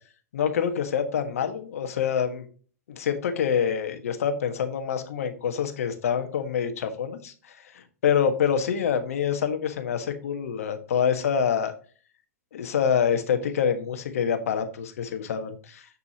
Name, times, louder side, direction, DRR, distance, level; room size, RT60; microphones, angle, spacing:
voice 1, 0.3-2.4 2.9-11.7 12.5-15.8, left 7 dB, 65° left, 7 dB, 1.5 m, -26 dB
7.7 x 6.8 x 2.8 m, 0.39 s
figure-of-eight pair, 105°, 8 cm